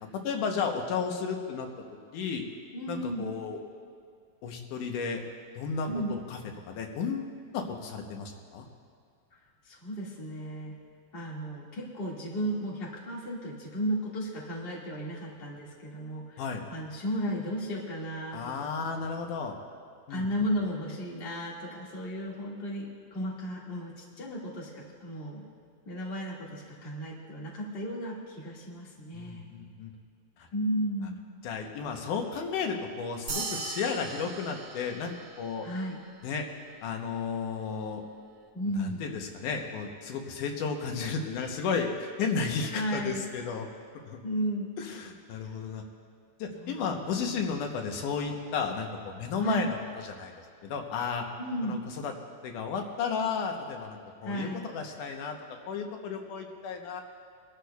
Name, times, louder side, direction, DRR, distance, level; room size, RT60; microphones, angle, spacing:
voice 1, 0.2-1.7 2.1-2.4 2.9-3.6 4.4-5.2 5.6-6.0 6.3-6.4 6.7-8.7 16.4-16.6 18.3-19.5 20.1-20.3 29.1-29.9 31.4-35.7 36.2-36.5 36.8-38.0 38.8-43.7 44.1-44.2 44.8-45.8 46.4-49.8 50.0-50.3 50.6-51.2 51.6-52.1 52.4-55.4 55.7-57.0, left 5 dB, 80° left, 3 dB, 2.5 m, -33 dB
voice 2, 2.7-3.2 5.9-6.1 9.6-10.7 11.1-16.4 16.7-18.7 18.9-19.1 20.1-25.4 25.8-29.5 30.5-31.2 35.6-36.0 38.5-39.0 42.7-43.3 44.2-44.7 46.6-47.0 47.2-47.5 49.4-49.6 51.4-51.8 54.2-54.7, equal, 25° left, -4 dB, 1.6 m, -34 dB
sound 1, 33.3-36.0, right 5 dB, 65° right, 2.7 m, -39 dB
24.0 x 12.5 x 2.3 m, 2.1 s
omnidirectional pair, 3.6 m